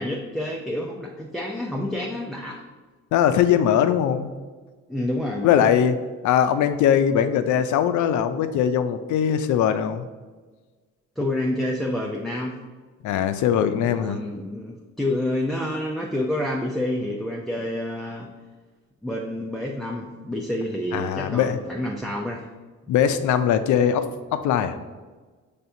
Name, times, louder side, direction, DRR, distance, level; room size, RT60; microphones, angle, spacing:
voice 1, 0.0-2.7 4.9-5.7 11.2-12.6 13.8-18.3 19.0-22.5 22.9-23.1, left 1 dB, ahead, -2 dB, 0.4 m, -28 dB
voice 2, 3.1-4.3 5.4-6.0 6.2-10.1 13.0-14.2 20.9-21.6 22.9-24.8, left 9 dB, 75° left, 10 dB, 0.5 m, -21 dB
5.7 x 3.4 x 2.7 m, 1.4 s
cardioid pair, 90°, 30 cm